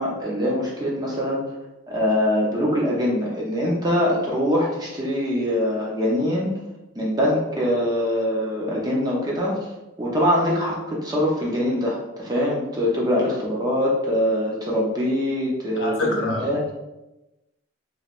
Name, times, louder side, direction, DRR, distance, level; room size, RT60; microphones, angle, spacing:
voice 1, 0.0-1.5 1.9-6.5 7.0-9.6 10.0-16.6, equal, 20° right, -3 dB, 0.5 m, -23 dB
voice 2, 15.8-16.5, left 2 dB, 65° left, -1 dB, 0.7 m, -25 dB
3.3 x 3.1 x 2.4 m, 1.0 s
head